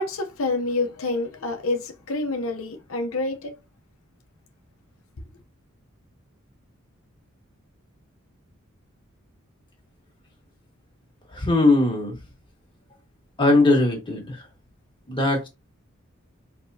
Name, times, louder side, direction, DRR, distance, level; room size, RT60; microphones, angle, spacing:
voice 1, 0.0-3.5, left 2 dB, 85° left, 0.8 m, -27 dB
voice 2, 11.3-12.2 13.4-14.4 15.1-15.5, left 2 dB, 25° left, 1.5 m, -20 dB
4.7 x 3.5 x 2.7 m
head